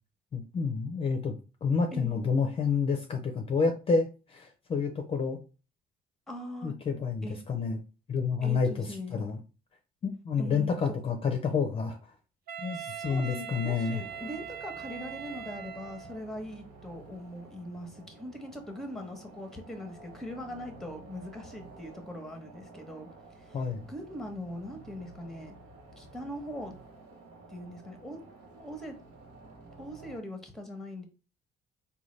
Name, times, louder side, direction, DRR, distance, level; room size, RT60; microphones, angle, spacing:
voice 1, 0.3-5.4 6.6-7.8 8.1-9.4 10.0-12.1 12.6-14.0 23.5-23.8, left 5 dB, 35° left, 5 dB, 0.5 m, -29 dB
voice 2, 1.9-2.2 6.3-6.7 7.2-7.4 8.4-9.2 10.4-11.0 12.7-23.1 23.3-23.6 23.9-25.6 26.0-26.7 27.5-28.2 28.6-29.0 29.8-31.0, left 1 dB, ahead, 5 dB, 0.9 m, -41 dB
Wind instrument woodwind instrument, 12.5-16.3, right 8 dB, 65° right, 0.6 m, -41 dB
sound 1, 14.0-30.2, right 3 dB, 90° right, 0.9 m, -52 dB
3.8 x 2.2 x 3.1 m, 0.33 s
cardioid pair, 110°, 17 cm